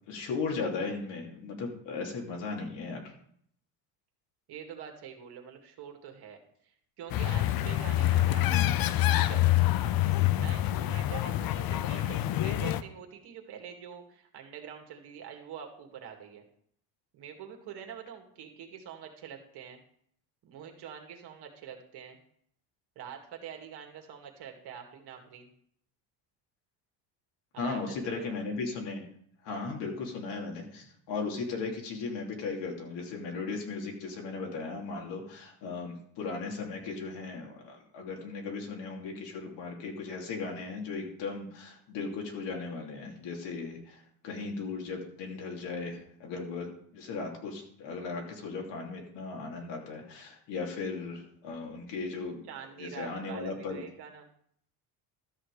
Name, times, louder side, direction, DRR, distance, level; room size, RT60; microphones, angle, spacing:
voice 1, 0.1-3.1 27.6-29.0 29.4-52.4 52.8-53.8, left 4 dB, 65° left, 0 dB, 3.1 m, -37 dB
voice 2, 4.5-9.7 10.4-16.4 17.1-19.8 20.4-22.2 23.0-25.5 27.5-28.4 29.5-29.7 52.5-54.3, right 8 dB, 60° right, 3 dB, 2.2 m, -46 dB
sound 1, 7.1-12.8, left 13 dB, 50° left, 0.7 m, -26 dB
13.0 x 6.4 x 4.9 m, 0.64 s
supercardioid pair, 110°, 45 cm